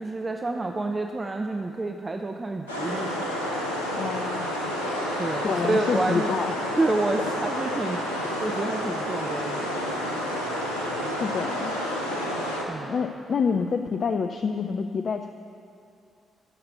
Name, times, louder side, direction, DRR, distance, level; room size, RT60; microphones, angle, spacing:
voice 1, 0.0-3.2 5.2-6.3 6.8-8.1 8.4-10.1 12.7-12.9, right 2 dB, 30° right, 4 dB, 0.8 m, -29 dB
sound 1, 2.7-12.6, equal, 85° left, 1.5 m, -29 dB
voice 2, 4.0-4.5 5.4-6.5 11.2-11.7 12.9-15.3, left 5 dB, 50° left, 7 dB, 0.5 m, -27 dB
12.0 x 7.9 x 9.0 m, 2.6 s
figure-of-eight pair, 40°, 0 cm